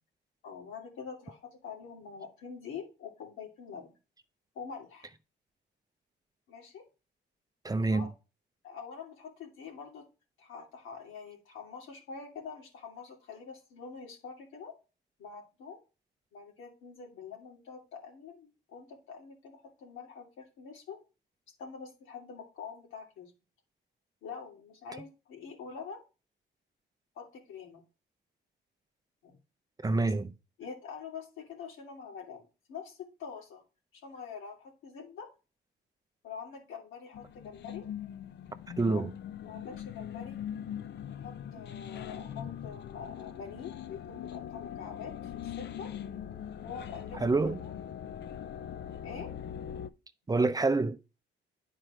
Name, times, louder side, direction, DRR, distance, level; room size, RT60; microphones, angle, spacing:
voice 1, 0.4-3.9 4.5-5.1 6.5-6.8 7.7-8.1 8.6-10.0 10.4-14.8 15.2-15.8 16.3-21.0 21.6-23.3 24.2-26.0 27.1-27.8 29.2-29.4 30.6-33.6 33.9-35.3 36.2-37.9 38.8-39.0 39.4-40.4 41.2-45.9 46.6-47.7 49.0-49.3, left 6 dB, 85° left, 2.8 m, -45 dB
voice 2, 7.6-8.1 29.8-30.3 38.8-39.1 47.2-47.6 50.3-51.0, right 3 dB, 20° right, 0.6 m, -27 dB
sound 1, 37.1-49.9, left 9 dB, 60° left, 0.6 m, -42 dB
9.8 x 4.5 x 4.9 m
cardioid pair, 90°, 20 cm